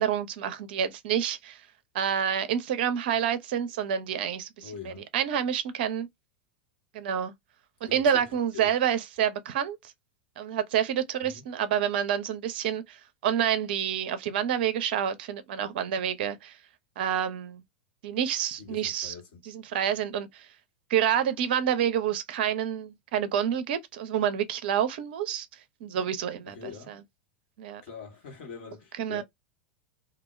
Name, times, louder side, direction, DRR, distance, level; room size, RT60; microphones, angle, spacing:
voice 1, 0.0-1.6 1.9-6.1 6.9-7.3 7.8-9.8 10.4-13.0 13.2-16.6 17.0-17.6 18.0-19.1 19.5-20.5 20.9-25.5 25.8-27.0 27.6-27.8 29.0-29.2, right 9 dB, 55° right, 0.5 m, -28 dB
voice 2, 4.6-5.1 7.9-8.8 11.2-11.4 18.6-19.4 26.4-26.9 27.8-29.2, left 6 dB, 60° left, 1.1 m, -44 dB
2.2 x 2.1 x 3.0 m
figure-of-eight pair, 85°, 6 cm